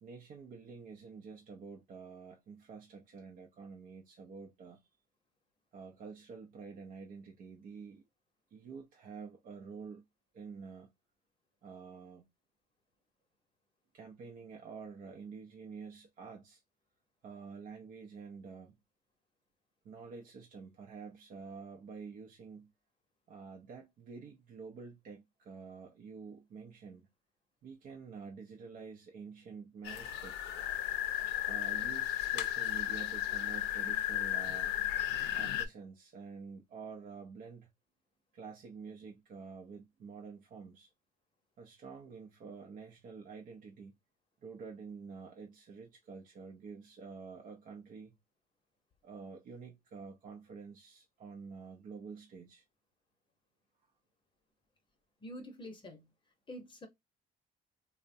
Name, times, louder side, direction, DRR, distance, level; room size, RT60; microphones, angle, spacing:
voice 1, 0.0-4.9 5.7-8.1 8.5-10.1 10.3-10.9 11.6-12.3 13.9-16.6 17.2-18.8 19.8-22.7 23.3-27.1 27.6-30.5 31.5-34.8 35.3-37.7 38.3-40.9 41.6-43.9 44.4-48.1 49.0-52.6, right 5 dB, 55° right, 0.6 m, -48 dB
sound 1, 29.8-35.7, left 12 dB, 85° left, 0.4 m, -34 dB
voice 2, 55.2-56.1 56.5-56.9, equal, 30° left, 0.8 m, -46 dB
3.4 x 2.1 x 2.5 m
cardioid pair, 110°, 17 cm